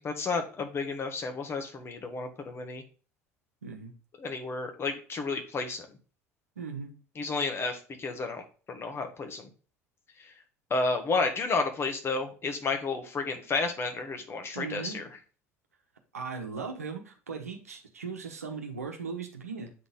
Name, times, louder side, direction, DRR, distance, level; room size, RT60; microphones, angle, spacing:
voice 1, 0.0-2.8 4.2-5.9 7.1-8.4 8.7-9.5 10.2-10.3 10.7-15.1, left 3 dB, 30° left, 1.5 m, -31 dB
voice 2, 3.6-3.9 6.6-6.9 14.5-15.1 16.1-19.7, right 5 dB, 80° right, 1.1 m, -38 dB
8.5 x 4.0 x 3.8 m
figure-of-eight pair, 65°, 8 cm